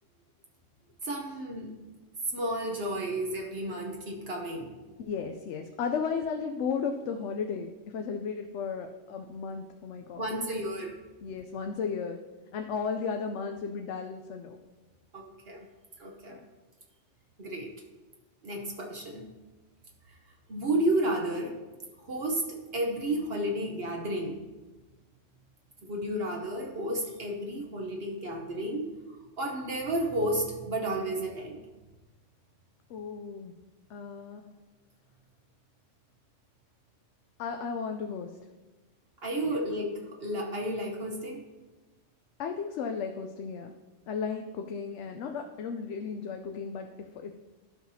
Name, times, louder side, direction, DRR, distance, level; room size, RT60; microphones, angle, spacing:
voice 1, 1.0-1.8 2.3-4.7 10.2-10.9 15.1-15.7 16.0-16.4 17.4-17.7 18.4-19.3 20.5-21.5 22.1-24.4 25.8-28.9 29.4-31.6 39.2-41.4, right 1 dB, 55° right, 1 dB, 1.1 m, -32 dB
voice 2, 5.0-10.3 11.2-12.2 12.5-14.6 16.3-16.4 32.9-33.5 33.9-34.4 37.4-38.3 39.4-39.6 42.4-43.7 44.1-47.4, left 5 dB, 75° left, 5 dB, 0.9 m, -34 dB
12.0 x 5.8 x 2.7 m, 1.2 s
omnidirectional pair, 1.2 m